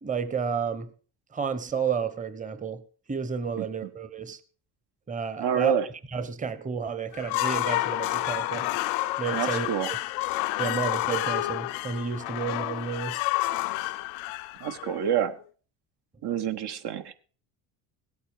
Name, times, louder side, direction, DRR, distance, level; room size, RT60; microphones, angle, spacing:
voice 1, 0.0-0.9 1.3-2.8 3.1-4.4 5.1-5.7 6.1-8.7 9.2-10.0 10.6-13.2 13.8-13.9, right 6 dB, 15° right, 12 dB, 1.1 m, -31 dB
voice 2, 5.4-5.9 9.3-9.9 14.6-15.3 16.2-17.1, right 9 dB, 55° right, 9 dB, 1.5 m, -27 dB
sound 1, 7.1-15.3, left 18 dB, 85° left, 0.8 m, -29 dB
17.5 x 8.5 x 5.1 m, 0.41 s
supercardioid pair, 85°, 46 cm